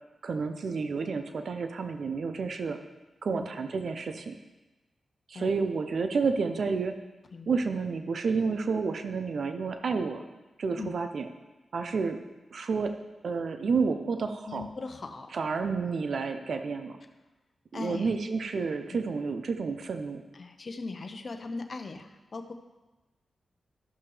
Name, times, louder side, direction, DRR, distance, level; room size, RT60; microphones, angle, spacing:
voice 1, 0.2-2.8 3.2-4.3 5.3-7.0 7.5-10.2 10.6-11.3 11.7-12.2 12.5-12.9 13.2-14.6 15.3-17.0 17.7-20.2, right 4 dB, 70° right, 8 dB, 0.6 m, -30 dB
voice 2, 14.4-15.3 17.7-18.1 18.9-19.0 20.3-22.5, left 3 dB, 55° left, 5 dB, 0.8 m, -39 dB
13.5 x 5.8 x 3.3 m, 1.1 s
cardioid pair, 45°, 0 cm